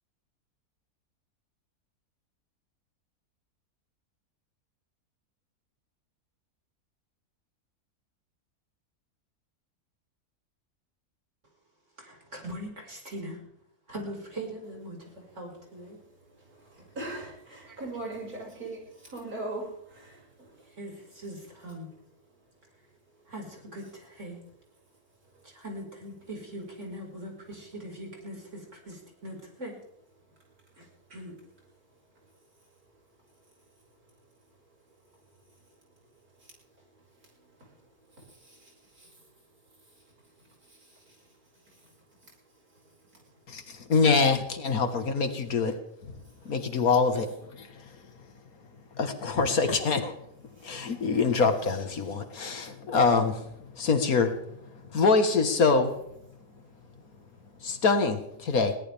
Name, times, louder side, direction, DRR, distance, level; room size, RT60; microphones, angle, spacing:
voice 1, 12.0-13.4 13.9-16.0 17.7-17.8 20.8-21.9 23.3-24.4 25.4-29.8 30.8-31.4, right 1 dB, 50° right, 0 dB, 5.5 m, -41 dB
voice 2, 17.0-20.2, right 2 dB, 70° right, -2 dB, 6.4 m, -38 dB
voice 3, 43.5-45.8 46.0-46.1 46.5-47.7 49.0-50.1 50.6-53.4 53.8-54.4 54.9-56.0 57.6-58.8, left 4 dB, 65° left, 7 dB, 2.0 m, -25 dB
21.0 x 17.5 x 3.5 m, 0.74 s
omnidirectional pair, 1.6 m